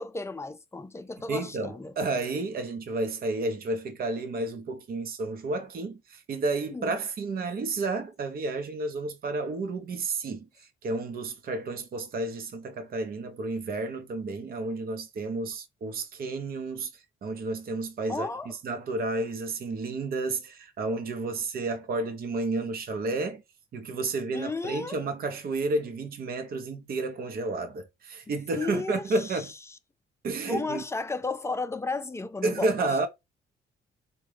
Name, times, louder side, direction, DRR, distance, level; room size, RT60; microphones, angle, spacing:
voice 1, 0.0-1.9 6.7-6.9 18.1-18.5 24.3-25.0 28.5-29.0 30.5-33.1, left 3 dB, 15° left, 0.4 m, -33 dB
voice 2, 1.3-23.4 23.7-29.5 30.2-30.8 32.4-33.1, right 3 dB, 50° right, 0.7 m, -31 dB
3.6 x 2.2 x 3.2 m
cardioid pair, 90°, 20 cm